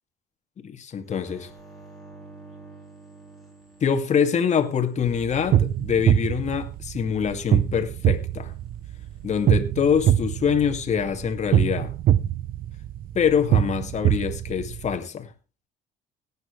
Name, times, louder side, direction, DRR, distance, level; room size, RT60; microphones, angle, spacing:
voice 1, 0.6-1.5 3.8-8.5 9.2-11.9 13.1-15.3, left 7 dB, 45° left, 2.4 m, -25 dB
sound 1, 1.1-5.7 9.0-9.5, right 3 dB, ahead, 6.2 m, -49 dB
sound 2, 5.0-15.0, right 11 dB, 60° right, 0.7 m, -24 dB
18.5 x 9.4 x 3.3 m
cardioid pair, 110°, 17 cm